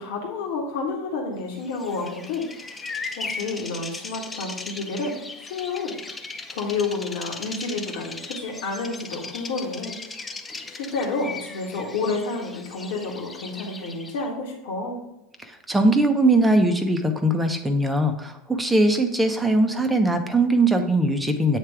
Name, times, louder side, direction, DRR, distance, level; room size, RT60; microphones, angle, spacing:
voice 1, 0.0-5.2 5.4-6.0 6.5-10.0 10.7-15.0, left 3 dB, 60° left, 0 dB, 1.5 m, -30 dB
Bird vocalization bird call bird song, 1.6-14.3, left 3 dB, 20° left, 0.7 m, -37 dB
voice 2, 15.4-21.6, right 1 dB, 10° right, 5 dB, 0.9 m, -21 dB
8.4 x 3.3 x 4.8 m, 0.91 s
figure-of-eight pair, 80°, 0 cm